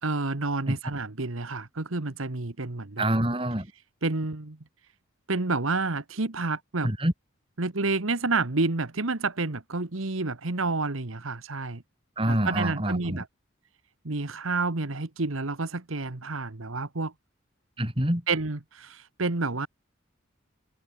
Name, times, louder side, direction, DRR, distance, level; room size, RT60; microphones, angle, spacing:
voice 1, 0.0-3.1 4.0-4.6 5.3-6.9 7.6-11.8 12.3-13.3 14.0-17.1 18.3-19.7, right 3 dB, 75° right, 1.5 m, -29 dB
voice 2, 3.0-3.7 6.8-7.1 12.2-13.2 17.8-18.2, right 1 dB, 25° right, 4.7 m, -26 dB
head